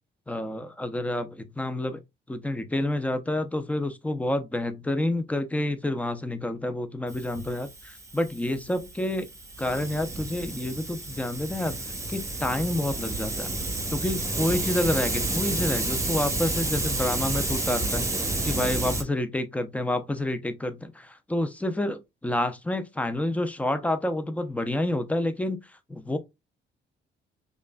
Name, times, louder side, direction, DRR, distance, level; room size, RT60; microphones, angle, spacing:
voice 1, 0.3-2.0 2.3-9.3 9.6-11.8 12.1-13.5 13.9-25.6 25.9-26.2, left 1 dB, 5° left, 0.5 m, -29 dB
Hiss, 7.1-19.0, right 2 dB, 15° right, 0.9 m, -30 dB
5.1 x 2.5 x 2.2 m
cardioid pair, 90°, 20 cm